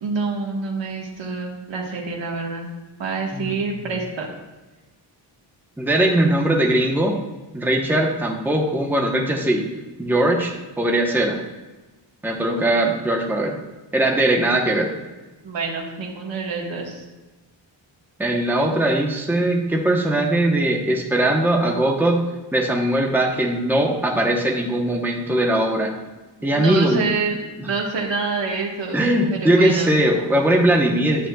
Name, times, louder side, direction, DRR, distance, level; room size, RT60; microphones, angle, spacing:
voice 1, 0.0-2.7 3.0-4.3 15.4-17.0 26.5-30.0, right 4 dB, 75° right, -2 dB, 1.3 m, -27 dB
voice 2, 5.8-7.1 7.5-9.6 10.0-11.4 12.2-13.6 13.9-14.9 18.2-22.2 22.5-25.9 26.4-27.1 28.9-31.3, right 1 dB, 5° right, 0 dB, 0.8 m, -20 dB
10.5 x 7.0 x 2.2 m, 1.2 s
wide cardioid pair, 125°, 45 cm